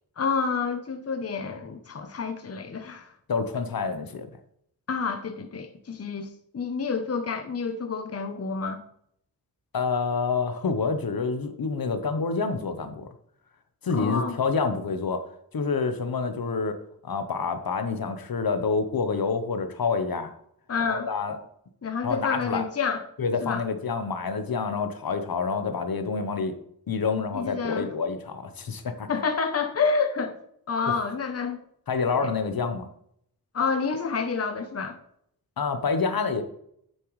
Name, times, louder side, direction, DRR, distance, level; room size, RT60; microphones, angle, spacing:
voice 1, 0.2-3.1 4.9-8.8 13.9-14.4 20.7-21.1 21.8-23.0 23.4-23.6 27.3-27.9 29.1-30.4 30.7-31.6 33.5-35.0, left 5 dB, 40° left, 0.8 m, -28 dB
voice 2, 3.3-4.3 9.7-13.1 13.8-15.2 15.5-20.3 20.9-21.4 22.0-22.6 23.2-26.5 26.9-29.1 30.9-31.0 31.9-32.9 35.6-36.4, left 4 dB, 70° left, 1.0 m, -27 dB
9.5 x 7.6 x 3.2 m
wide cardioid pair, 125°, 37 cm